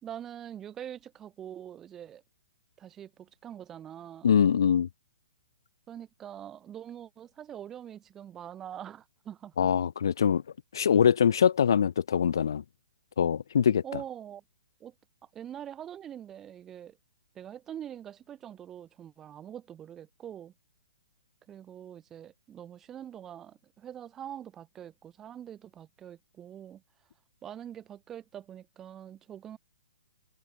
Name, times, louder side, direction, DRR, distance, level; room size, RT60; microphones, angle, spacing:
voice 1, 0.0-2.2 2.8-4.4 5.9-9.7 13.8-14.4 14.8-14.9 15.3-17.0 17.3-20.5 21.5-26.8 27.4-29.6, right 10 dB, 10° right, 4.4 m, -44 dB
voice 2, 4.2-4.9 9.6-10.4 10.7-12.6 13.2-13.8, left 8 dB, 65° left, 1.7 m, -23 dB
hypercardioid pair, 170°, 2 cm